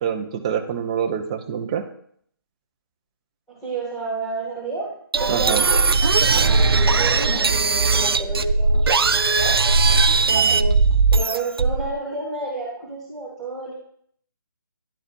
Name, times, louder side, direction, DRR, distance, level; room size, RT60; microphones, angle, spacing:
voice 1, 0.0-1.8 5.3-5.6, right 8 dB, 15° right, 5 dB, 0.4 m, -25 dB
voice 2, 3.5-5.9 6.2-9.6 10.1-10.8 11.1-13.7, right 2 dB, 5° left, -12 dB, 1.9 m, -30 dB
sound 1, 5.1-11.9, right 4 dB, 80° right, 0.4 m, -18 dB
11.0 x 4.2 x 2.5 m, 0.65 s
figure-of-eight pair, 155°, 12 cm